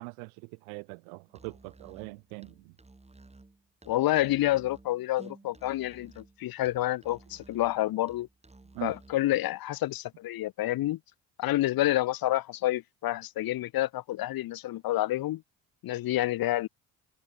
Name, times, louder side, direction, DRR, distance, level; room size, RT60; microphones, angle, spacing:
voice 1, 0.0-2.7 8.7-8.9, right 40 dB or more, 80° right, 0.8 m, -41 dB
Musical instrument, 1.3-9.3, right 2 dB, 15° right, 3.4 m, -54 dB
voice 2, 3.9-8.3 8.8-11.0 11.4-15.4 15.8-16.7, left 15 dB, 55° left, 0.8 m, -28 dB
hypercardioid pair, 60°, 44 cm